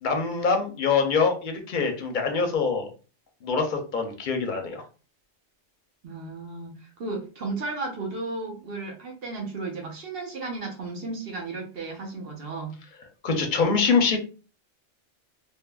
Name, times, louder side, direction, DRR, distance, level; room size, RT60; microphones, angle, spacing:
voice 1, 0.0-2.9 3.4-4.8 13.2-14.2, left 5 dB, 50° left, 4 dB, 0.6 m, -24 dB
voice 2, 6.0-12.8, right 3 dB, 60° right, 1 dB, 0.9 m, -34 dB
3.4 x 2.0 x 2.2 m, 0.35 s
omnidirectional pair, 1.2 m